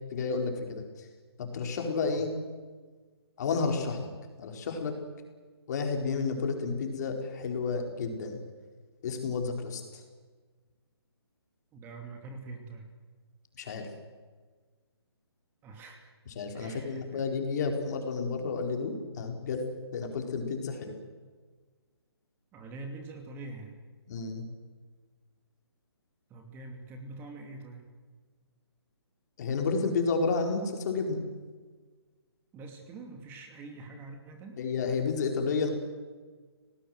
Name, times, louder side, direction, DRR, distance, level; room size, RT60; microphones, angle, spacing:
voice 1, 0.1-1.1 1.4-2.3 3.4-4.1 4.4-4.9 5.7-8.4 9.0-10.0 13.6-13.9 16.4-19.6 19.9-21.0 24.1-24.4 29.4-31.2 34.6-35.7, left 4 dB, 40° left, 3 dB, 4.4 m, -31 dB
voice 2, 11.7-12.9 15.6-16.1 16.5-17.3 22.5-23.8 26.3-27.9 32.5-34.6, right 3 dB, 15° right, 4 dB, 2.5 m, -45 dB
30.0 x 19.0 x 7.8 m, 1.4 s
hypercardioid pair, 150°, 14 cm